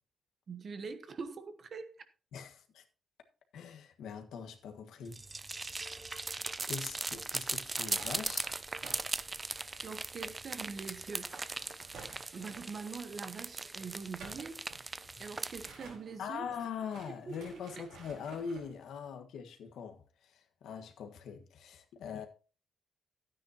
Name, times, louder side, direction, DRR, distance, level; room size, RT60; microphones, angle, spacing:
voice 1, 0.5-1.9 9.6-11.4 12.3-14.6 15.2-16.5 17.3-17.6, right 5 dB, 40° right, 1.1 m, -43 dB
voice 2, 2.3-2.8 3.5-5.2 6.7-8.5 16.2-22.3, left 6 dB, 80° left, 1.5 m, -42 dB
sound 1, 5.0-15.7, right 3 dB, 20° right, 0.4 m, -39 dB
sound 2, 7.7-10.3 10.5-10.6 11.0-12.8 13.9-18.7, right 4 dB, 80° right, 4.7 m, -53 dB
13.0 x 9.4 x 2.9 m
cardioid pair, 145°, 0 cm